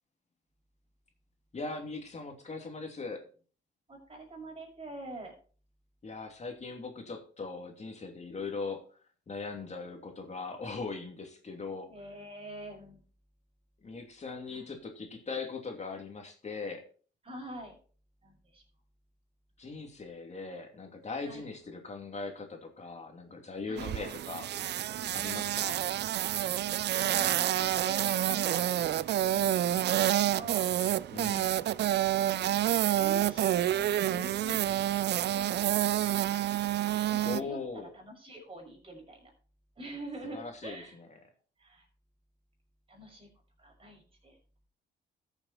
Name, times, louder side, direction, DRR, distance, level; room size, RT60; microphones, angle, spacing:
voice 1, 1.5-3.2 6.0-8.8 9.3-11.9 13.8-16.8 19.6-24.5 25.1-25.8 31.1-31.5 37.2-37.9 40.3-40.8, left 4 dB, 35° left, 3 dB, 2.8 m, -40 dB
voice 2, 3.9-5.3 11.9-13.0 14.4-14.6 17.2-17.8 18.2-18.6 21.2-21.4 23.7-24.2 26.6-30.7 32.9-36.2 37.1-39.3 39.8-41.0 41.6-41.9 42.9-43.3 43.6-44.4, right 1 dB, 25° right, 1 dB, 6.2 m, -46 dB
sound 1, 23.8-37.4, right 12 dB, 60° right, 0.5 m, -28 dB
13.5 x 7.2 x 4.3 m, 0.42 s
cardioid pair, 90°, 20 cm